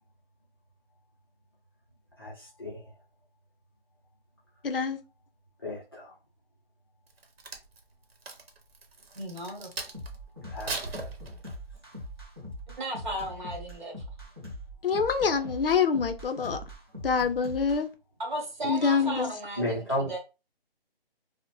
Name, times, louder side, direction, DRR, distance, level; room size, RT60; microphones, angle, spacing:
voice 1, 2.2-2.9 5.6-6.2 10.5-11.1 19.6-20.1, equal, 25° left, 0.6 m, -33 dB
voice 2, 4.6-5.0 14.8-16.6 17.0-17.9 18.6-19.3, left 5 dB, 65° left, 0.5 m, -26 dB
Crack, 7.1-10.2 10.6-11.8 12.3-12.5, right 3 dB, 75° right, 0.9 m, -39 dB
voice 3, 9.1-9.7 12.8-13.9 18.2-20.2, right 1 dB, 50° right, 1.1 m, -35 dB
sound 1, 9.9-17.8, equal, 25° right, 0.5 m, -41 dB
2.6 x 2.0 x 2.9 m
hypercardioid pair, 175°, 30 cm